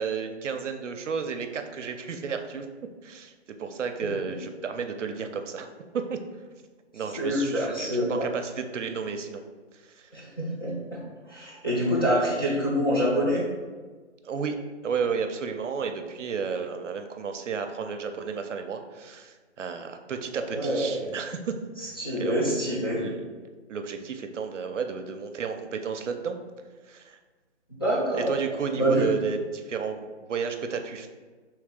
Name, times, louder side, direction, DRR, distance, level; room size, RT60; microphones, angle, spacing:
voice 1, 0.0-2.7 3.0-5.7 5.9-6.2 6.9-9.4 9.7-10.1 14.2-14.6 14.8-22.4 23.0-23.2 23.7-26.4 26.9-27.2 28.1-31.1, right 6 dB, 80° right, 6 dB, 0.6 m, -32 dB
voice 2, 7.2-8.3 10.1-11.0 11.3-13.5 20.4-21.0 22.0-23.0 27.7-28.3 28.7-29.0, equal, 20° left, -9 dB, 0.4 m, -26 dB
3.2 x 3.2 x 3.6 m, 1.4 s
hypercardioid pair, 155°, 36 cm